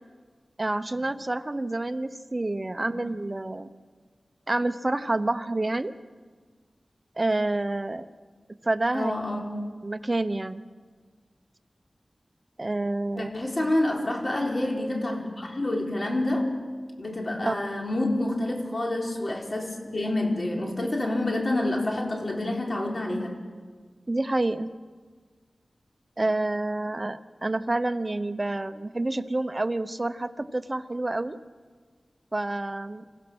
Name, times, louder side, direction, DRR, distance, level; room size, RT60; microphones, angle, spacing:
voice 1, 0.6-3.7 4.5-5.9 7.2-8.1 8.6-9.1 9.8-10.6 12.6-13.3 17.5-17.6 24.1-24.7 26.2-31.4 32.3-33.0, right 2 dB, 35° right, 11 dB, 0.9 m, -28 dB
voice 2, 8.9-9.5 13.1-16.5 17.0-23.4, left 1 dB, 50° left, 0 dB, 3.9 m, -28 dB
28.0 x 15.5 x 6.2 m, 1.5 s
wide cardioid pair, 60°, 0 cm